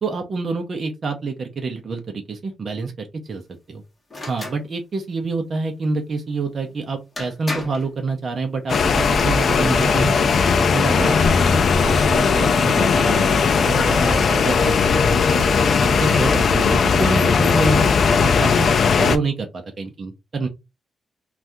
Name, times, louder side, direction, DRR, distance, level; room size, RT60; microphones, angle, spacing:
voice 1, 0.0-3.4 3.7-3.8 4.3-10.2 10.7-15.4 15.8-18.7 19.0-20.5, right 3 dB, 40° right, 0.6 m, -27 dB
sound 1, 4.1-4.6 6.7-6.8 7.2-7.9 8.8-9.2, left 2 dB, 20° left, 1.3 m, -32 dB
sound 2, 8.7-19.2, left 5 dB, 50° left, 0.4 m, -18 dB
2.7 x 2.4 x 3.4 m
wide cardioid pair, 135°, 0 cm